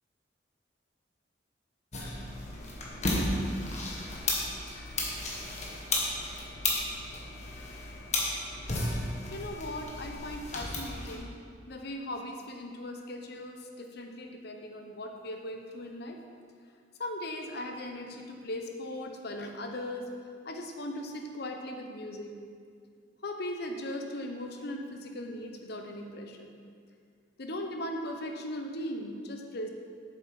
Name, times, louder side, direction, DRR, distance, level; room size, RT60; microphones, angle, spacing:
sound 1, 1.9-11.2, left 2 dB, 40° left, 1.4 m, -34 dB
voice 1, 9.3-11.3 11.7-16.2 17.0-20.1 20.4-22.3 23.2-26.5 27.4-29.7, left 1 dB, 60° left, 4 dB, 0.9 m, -38 dB
7.9 x 7.3 x 4.8 m, 2.1 s
head